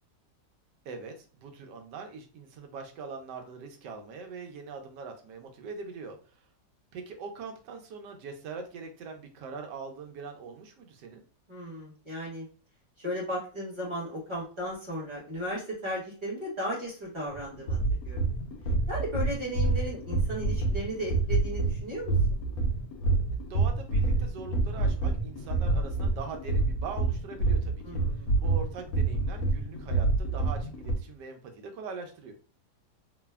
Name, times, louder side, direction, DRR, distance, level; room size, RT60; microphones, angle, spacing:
voice 1, 0.8-6.2 6.9-11.2 23.5-28.0 28.4-32.3, right 5 dB, 85° right, 4 dB, 1.2 m, -42 dB
voice 2, 11.5-12.5 13.0-17.8 18.0-18.2 18.9-22.1 27.8-28.3, equal, 25° right, -5 dB, 0.8 m, -35 dB
sound 1, 17.3-30.9, right 3 dB, 70° left, 0.9 m, -27 dB
3.2 x 2.1 x 2.2 m, 0.39 s
omnidirectional pair, 1.8 m